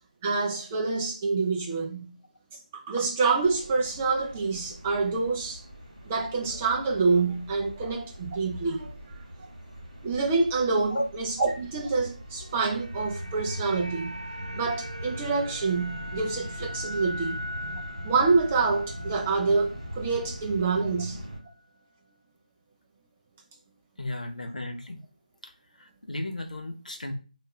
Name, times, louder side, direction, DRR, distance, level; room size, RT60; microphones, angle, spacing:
voice 1, 0.2-2.1 2.7-5.6 6.0-9.5 10.0-14.2 14.5-17.4 18.0-21.2, right 4 dB, 10° right, 0.4 m, -27 dB
sound 1, 3.4-21.4, equal, 30° right, 2.1 m, -41 dB
sound 2, 12.3-20.6 20.9-21.1, equal, 60° right, 1.0 m, -41 dB
voice 2, 24.0-25.0 25.4-25.5 25.8-27.1, left 1 dB, 65° left, 0.8 m, -34 dB
6.4 x 2.4 x 2.3 m
figure-of-eight pair, 165°, 4 cm